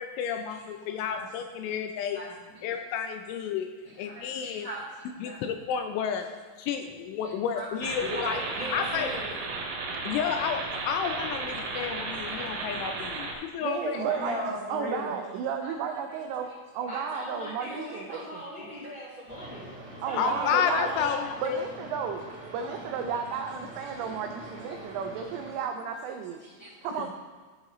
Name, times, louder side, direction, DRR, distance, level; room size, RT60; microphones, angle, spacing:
voice 1, 0.0-2.2 2.6-3.7 4.0-4.7 5.2-6.3 6.6-8.4 8.7-9.1 10.0-14.0 20.2-21.7, left 7 dB, 85° left, 6 dB, 2.9 m, -31 dB
voice 2, 2.1-2.7 3.9-4.2 4.5-4.8 5.2-5.4 7.2-7.7 12.6-12.7 14.1-15.1 15.6-15.7 16.1-16.2 16.4-16.6 18.6-18.9 20.1-20.3 22.6-22.8 23.8-24.0 24.6-24.8 26.4-27.1, equal, 20° left, -9 dB, 2.4 m, -40 dB
sound 1, 7.8-13.3, right 3 dB, 70° right, 3.5 m, -34 dB
voice 3, 8.0-9.3 13.9-14.2 16.9-19.6 20.1-21.3, equal, 50° right, -8 dB, 1.4 m, -39 dB
voice 4, 13.6-14.4 14.7-16.5 16.7-18.5 20.0-20.9 21.4-22.2 22.5-26.4 26.8-27.1, right 7 dB, 85° right, 4 dB, 2.5 m, -33 dB
sound 2, 19.3-25.5, right 1 dB, 5° right, 1.3 m, -44 dB
14.0 x 6.4 x 3.0 m, 1.5 s
omnidirectional pair, 5.7 m